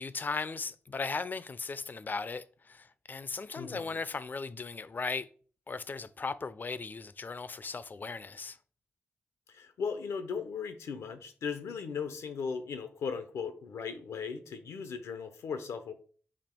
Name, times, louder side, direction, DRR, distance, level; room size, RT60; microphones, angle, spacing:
voice 1, 0.0-5.3 5.7-8.6, left 4 dB, 40° left, 0.4 m, -37 dB
voice 2, 3.6-4.0 9.5-15.9, left 6 dB, 90° left, 0.6 m, -37 dB
4.3 x 2.9 x 4.4 m
cardioid pair, 60°, 5 cm